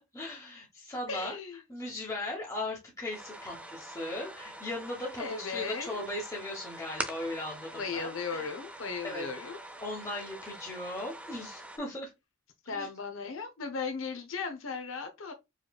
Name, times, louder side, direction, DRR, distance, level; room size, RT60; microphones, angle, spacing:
voice 1, 0.1-1.4 1.7-8.5 9.0-9.3 9.8-12.1 12.7-12.9, left 1 dB, 15° left, 1.1 m, -38 dB
voice 2, 1.1-1.6 5.2-6.0 7.8-9.6 12.7-15.3, left 5 dB, 75° left, 0.8 m, -36 dB
sound 1, 3.1-11.8, right 1 dB, 5° right, 0.5 m, -44 dB
4.7 x 3.1 x 2.3 m
head